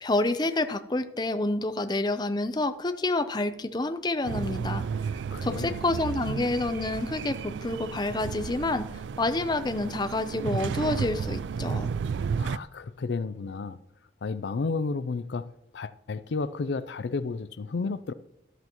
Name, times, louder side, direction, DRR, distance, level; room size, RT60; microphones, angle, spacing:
voice 1, 0.0-4.8 5.4-8.9 9.2-11.9, left 2 dB, 25° left, 0.6 m, -28 dB
sound 1, 4.2-12.6, right 6 dB, 75° right, 0.3 m, -33 dB
voice 2, 5.3-5.8 12.4-13.8 14.2-18.1, left 4 dB, 70° left, 0.4 m, -32 dB
13.0 x 12.0 x 3.0 m
head